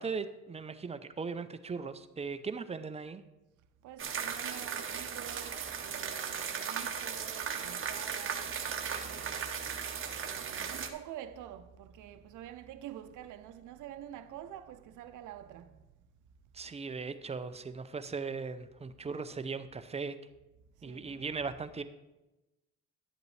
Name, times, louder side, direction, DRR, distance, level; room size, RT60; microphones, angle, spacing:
voice 1, 0.0-3.2 16.5-20.2 20.8-21.8, right 4 dB, 20° right, 0.5 m, -38 dB
voice 2, 3.8-15.9 20.8-21.3, right 10 dB, 85° right, 0.6 m, -48 dB
sound 1, 4.0-10.9, right 7 dB, 45° right, 0.9 m, -37 dB
11.0 x 7.8 x 3.2 m
cardioid pair, 90°, 30 cm